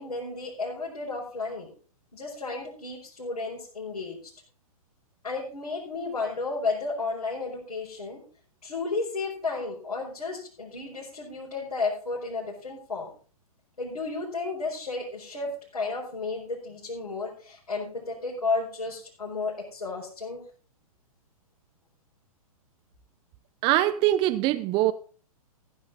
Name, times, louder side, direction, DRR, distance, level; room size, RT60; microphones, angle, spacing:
voice 1, 0.0-1.7 2.1-4.3 5.2-8.2 8.6-13.1 13.8-20.4, left 3 dB, 85° left, 4.7 m, -33 dB
voice 2, 23.6-24.9, right 14 dB, 25° right, 0.5 m, -23 dB
15.0 x 8.8 x 4.1 m
hypercardioid pair, 115°, 19 cm